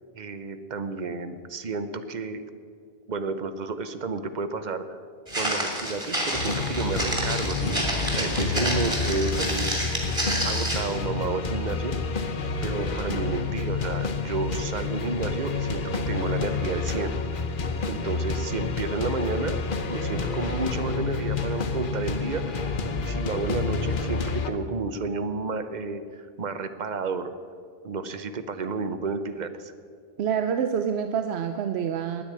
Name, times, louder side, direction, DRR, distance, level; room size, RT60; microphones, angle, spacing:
voice 1, 0.1-2.4 3.1-4.9 5.4-7.8 8.1-9.9 10.2-11.9 12.6-17.4 17.9-19.6 19.9-22.6 23.0-27.3 27.8-29.7, right 4 dB, 50° right, 10 dB, 0.8 m, -31 dB
Walk footsteps, 5.3-11.0, right 1 dB, 30° right, 2.8 m, -29 dB
sound 1, 6.3-24.5, left 4 dB, 55° left, 1.1 m, -29 dB
voice 2, 30.2-32.2, right 7 dB, 90° right, 8 dB, 0.9 m, -27 dB
10.0 x 9.8 x 8.6 m, 2.2 s
omnidirectional pair, 1.1 m